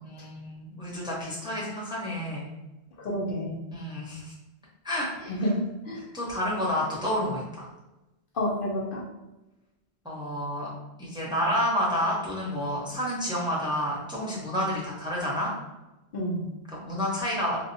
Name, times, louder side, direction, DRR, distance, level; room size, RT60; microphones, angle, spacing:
voice 1, 0.0-2.5 3.7-4.3 4.8-5.1 5.4-5.5 6.1-7.7 10.0-10.7 11.0-15.5 16.7-17.6, equal, 5° right, -6 dB, 0.7 m, -29 dB
voice 2, 3.0-3.6 5.3-5.6 5.9-6.0 8.3-9.0 16.1-16.5, equal, 60° left, -2 dB, 0.8 m, -29 dB
4.1 x 2.2 x 2.6 m, 1.0 s
omnidirectional pair, 1.1 m